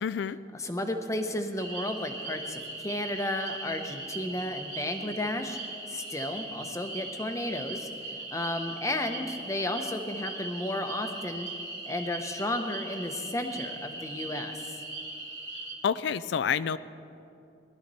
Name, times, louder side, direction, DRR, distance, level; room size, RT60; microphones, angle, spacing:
voice 1, 0.0-0.4 15.8-16.8, left 7 dB, 80° left, 15 dB, 0.4 m, -28 dB
voice 2, 0.5-11.5 11.8-14.8, left 1 dB, 15° left, 6 dB, 0.8 m, -33 dB
sound 1, 1.6-15.7, right 2 dB, 35° right, 2.8 m, -39 dB
19.5 x 12.5 x 4.1 m, 2.7 s
head